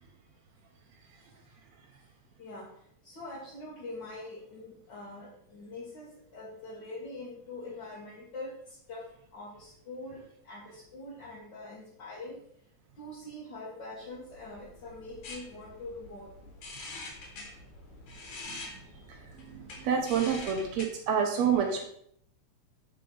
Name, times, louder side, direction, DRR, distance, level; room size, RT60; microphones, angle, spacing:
voice 1, 2.4-12.4 13.0-16.3 18.5-18.6 19.2-19.3, left 2 dB, 45° left, -7 dB, 1.6 m, -44 dB
sound 1, 14.0-20.8, left 2 dB, 75° left, 3.0 m, -46 dB
voice 2, 19.1-21.8, right 7 dB, 70° right, 3 dB, 1.8 m, -29 dB
9.2 x 4.0 x 3.9 m, 0.69 s
omnidirectional pair, 3.6 m